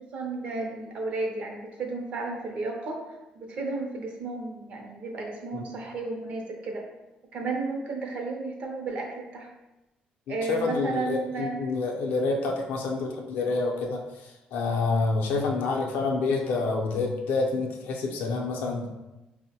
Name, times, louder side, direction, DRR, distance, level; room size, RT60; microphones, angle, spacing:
voice 1, 0.0-3.0 3.4-6.8 7.3-9.5 10.3-11.6, right 3 dB, 45° right, 1 dB, 0.5 m, -33 dB
voice 2, 10.3-18.9, left 3 dB, 85° left, 0 dB, 0.5 m, -28 dB
4.4 x 2.0 x 2.8 m, 1.0 s
cardioid pair, 180°, 3 cm